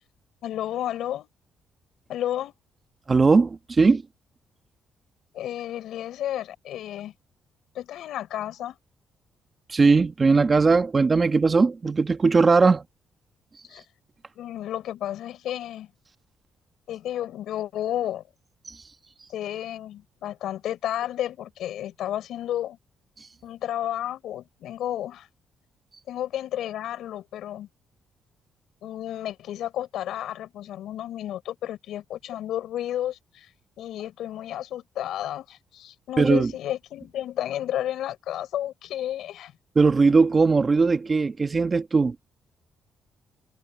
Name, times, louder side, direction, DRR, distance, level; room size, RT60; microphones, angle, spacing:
voice 1, 0.4-1.3 2.1-2.5 5.3-7.1 7.7-8.8 13.7-13.8 14.3-15.9 16.9-18.2 19.3-22.8 23.4-25.3 26.1-27.7 28.8-33.5 33.8-39.5, left 12 dB, 80° left, 6.6 m, -32 dB
voice 2, 3.1-4.0 9.7-12.8 18.7-18.8 36.2-36.5 39.7-42.1, right 4 dB, 30° right, 1.4 m, -19 dB
cardioid pair, 90°, 0 cm